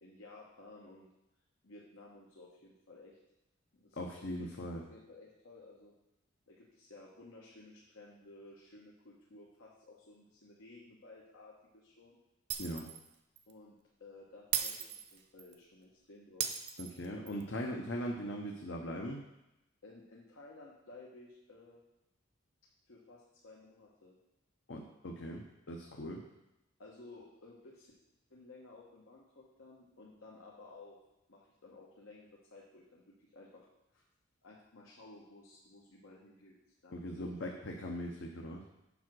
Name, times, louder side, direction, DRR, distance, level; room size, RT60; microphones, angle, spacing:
voice 1, 0.0-1.1 1.6-3.2 3.7-5.9 6.5-12.2 13.5-14.8 15.1-16.5 19.8-21.8 22.9-24.1 26.8-27.9 28.3-31.0 31.3-33.7 33.9-34.0 34.4-36.6 36.8-37.6, left 2 dB, 85° left, -4 dB, 1.2 m, -55 dB
voice 2, 3.9-4.8 12.6-12.9 16.8-19.2 24.7-26.2 36.9-38.6, equal, 65° left, 0 dB, 0.8 m, -40 dB
Shatter, 12.5-13.1 13.4-13.5 14.5-15.5 16.4-17.4, right 9 dB, 55° right, 0.6 m, -37 dB
7.1 x 4.9 x 6.2 m, 0.93 s
head